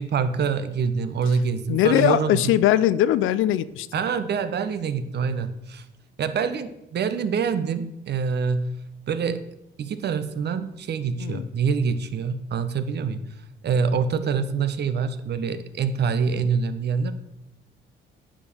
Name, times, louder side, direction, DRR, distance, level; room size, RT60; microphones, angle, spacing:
voice 1, 0.0-2.5 3.9-5.8 6.2-8.7 9.1-9.4 9.8-13.2 13.6-17.1, right 6 dB, 55° right, 11 dB, 0.9 m, -25 dB
voice 2, 1.7-3.9 11.2-11.5, left 12 dB, 90° left, 16 dB, 0.5 m, -20 dB
9.9 x 5.1 x 6.9 m, 0.87 s
cardioid pair, 90°, 20 cm